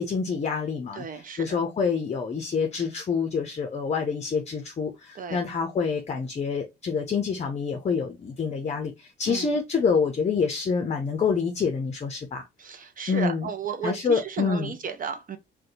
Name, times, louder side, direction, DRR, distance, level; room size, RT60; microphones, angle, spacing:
voice 1, 0.0-12.4 13.1-13.5 13.8-14.7, left 5 dB, 35° left, 0.6 m, -27 dB
voice 2, 0.9-1.6 5.1-5.4 9.3-9.5 12.6-15.4, right 6 dB, 45° right, 0.5 m, -34 dB
2.6 x 2.2 x 3.9 m
cardioid pair, 90°, 20 cm